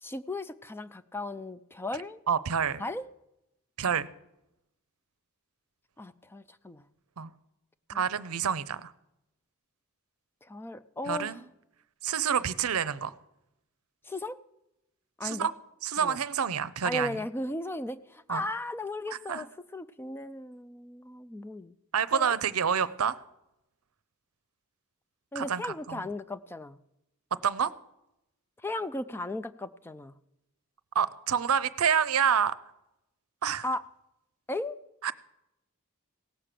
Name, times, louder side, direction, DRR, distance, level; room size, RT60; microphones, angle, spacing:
voice 1, 0.0-2.2 2.8-3.1 6.0-6.9 7.9-8.1 10.4-11.4 14.0-14.4 15.2-15.5 16.0-16.2 16.8-21.8 22.1-22.4 25.3-26.8 28.6-30.2 33.6-33.8 34.5-34.8, left 2 dB, 10° left, 13 dB, 0.4 m, -36 dB
voice 2, 2.3-2.8 3.8-4.1 7.2-7.3 7.9-8.9 11.1-11.4 12.0-13.1 15.2-15.5 15.8-17.1 18.3-18.4 19.3-19.4 21.9-23.2 25.3-26.0 27.4-27.7 30.9-32.6 33.4-33.6 35.0-35.1, right 7 dB, 70° right, 16 dB, 0.6 m, -28 dB
17.0 x 6.8 x 7.5 m, 0.86 s
head